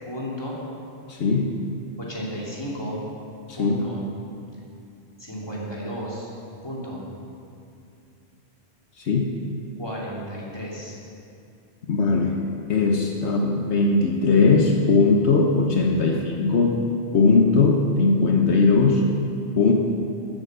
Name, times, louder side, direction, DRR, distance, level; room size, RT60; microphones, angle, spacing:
voice 1, 0.0-0.6 2.0-3.0 3.6-4.0 5.2-6.3 6.6-7.1 9.8-11.0 13.2-13.4 16.1-16.2, equal, 20° left, -5 dB, 2.8 m, -33 dB
voice 2, 1.1-1.5 3.5-3.8 9.0-9.3 11.9-12.4 12.7-16.8 17.1-19.0 19.6-19.7, left 4 dB, 80° left, 1 dB, 1.3 m, -19 dB
14.0 x 8.0 x 6.7 m, 2.5 s
omnidirectional pair, 1.1 m